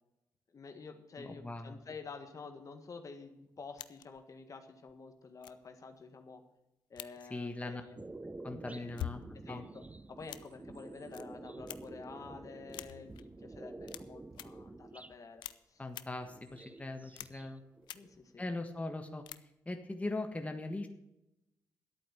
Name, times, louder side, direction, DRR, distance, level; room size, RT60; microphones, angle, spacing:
voice 1, 0.5-6.4 6.9-8.0 8.7-9.1 9.4-9.8 10.1-15.4 15.7-15.8 17.9-18.4, left 4 dB, 45° left, 6 dB, 1.7 m, -49 dB
voice 2, 1.2-1.8 7.3-7.8 8.4-9.2 9.5-9.6 15.8-17.6 18.4-19.2 19.7-20.9, left 2 dB, 20° left, 5 dB, 1.5 m, -40 dB
sound 1, 3.8-4.2 4.9-5.0 5.4-5.7 6.9-7.2 8.7-9.3 10.3-10.6 11.1-11.2 11.7-12.0 12.7-13.2 13.9-14.0 14.3-14.4 15.4-15.5 15.9-16.0 17.2-17.5 17.8-18.0 19.3-19.4, left 12 dB, 85° left, 0.5 m, -44 dB
sound 2, 8.0-15.2 16.1-17.5 17.8-18.7, right 2 dB, 20° right, 0.6 m, -49 dB
11.5 x 8.6 x 7.1 m, 0.88 s
supercardioid pair, 60°, 8 cm